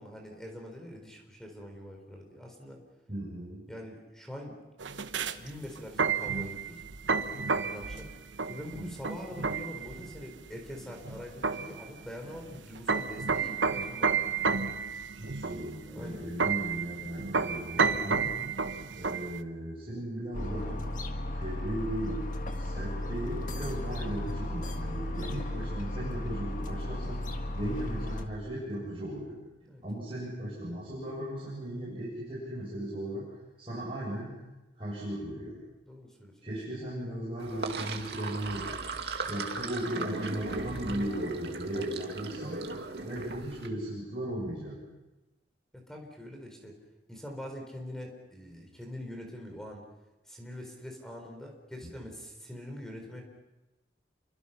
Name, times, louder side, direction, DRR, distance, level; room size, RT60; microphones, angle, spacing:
voice 1, 0.0-2.8 3.7-4.6 5.4-6.8 7.2-8.1 8.5-14.3 15.9-16.3 18.2-18.4 27.5-27.8 29.6-29.8 35.8-36.3 45.7-46.7 47.1-49.8 50.3-53.2, equal, 5° left, 2 dB, 4.2 m, -44 dB
voice 2, 3.1-3.6 15.1-18.4 18.9-20.9 21.3-27.2 27.5-29.4 29.8-33.3 33.6-34.3 34.8-35.6 36.4-38.7 39.2-42.6 43.0-44.8, right 1 dB, 30° right, -7 dB, 7.8 m, -37 dB
sound 1, 4.8-19.4, right 5 dB, 90° right, 1.1 m, -31 dB
sound 2, 20.3-28.2, left 1 dB, 45° left, 1.7 m, -35 dB
Sink (filling or washing), 37.4-43.7, right 3 dB, 60° right, 2.3 m, -37 dB
29.5 x 24.5 x 5.8 m, 1.0 s
head